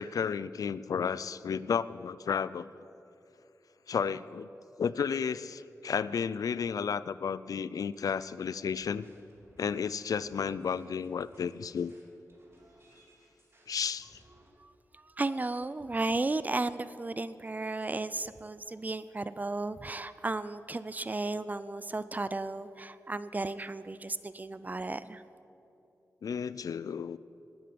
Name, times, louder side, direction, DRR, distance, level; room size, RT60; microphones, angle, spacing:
voice 1, 0.0-2.7 3.9-4.5 4.8-9.1 9.6-11.9 13.7-14.2 26.2-27.2, left 6 dB, 75° left, 17 dB, 0.4 m, -32 dB
sound 1, 7.9-14.5, right 1 dB, 45° right, 3.2 m, -63 dB
voice 2, 14.6-25.2, right 2 dB, 25° right, 15 dB, 0.5 m, -34 dB
19.0 x 9.5 x 6.9 m, 2.8 s
wide cardioid pair, 90°, 6 cm